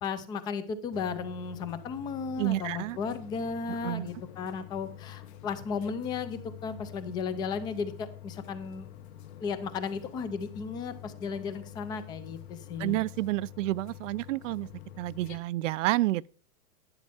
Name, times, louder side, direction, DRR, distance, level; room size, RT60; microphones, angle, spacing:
voice 1, 0.0-8.9 9.4-13.0, left 5 dB, 10° left, 0.4 m, -35 dB
sound 1, 0.9-15.4, left 12 dB, 50° left, 1.3 m, -47 dB
voice 2, 2.4-3.0 3.8-4.1 12.8-14.7 15.0-16.3, right 17 dB, 65° right, 0.5 m, -29 dB
11.5 x 10.5 x 3.5 m
supercardioid pair, 160°, 41 cm